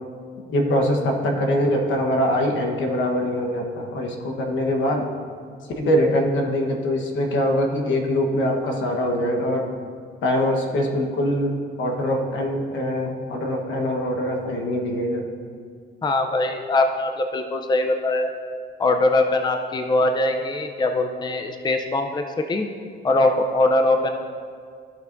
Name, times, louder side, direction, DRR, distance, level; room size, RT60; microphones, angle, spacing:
voice 1, 0.5-5.0 5.8-9.7 10.2-15.2, equal, 75° left, 2 dB, 1.2 m, -23 dB
voice 2, 16.0-18.3 18.8-22.7 23.0-24.1, left 2 dB, 20° left, 5 dB, 0.5 m, -22 dB
14.5 x 5.7 x 2.6 m, 2.1 s
cardioid pair, 90°, 20 cm